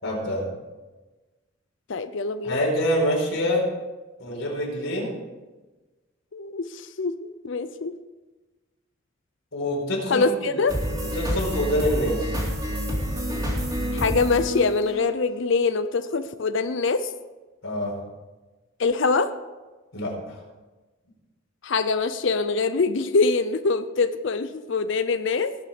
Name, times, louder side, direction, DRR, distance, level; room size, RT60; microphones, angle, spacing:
voice 1, 0.0-0.4 2.4-3.6 4.2-5.1 9.5-10.4 11.0-12.4 17.6-17.9 19.9-20.4, equal, 85° left, -2 dB, 4.7 m, -26 dB
voice 2, 1.9-2.6 6.3-7.9 10.1-10.8 13.9-17.1 18.8-19.3 21.6-25.5, left 4 dB, 65° left, 10 dB, 0.5 m, -24 dB
sound 1, 10.7-15.4, equal, 20° right, 3.3 m, -28 dB
19.0 x 6.9 x 5.1 m, 1.2 s
head